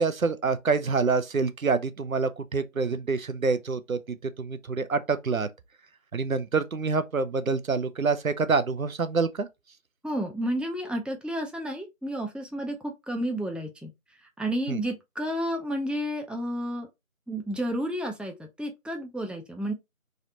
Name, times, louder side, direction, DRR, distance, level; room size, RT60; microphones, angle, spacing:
voice 1, 0.0-4.0 4.4-5.5 6.1-9.5 14.7-14.8, right 4 dB, 70° right, 0.5 m, -26 dB
voice 2, 10.0-13.9 14.2-16.9 17.3-19.7, equal, 5° right, 0.4 m, -31 dB
3.2 x 2.6 x 2.6 m
figure-of-eight pair, 180°, 43 cm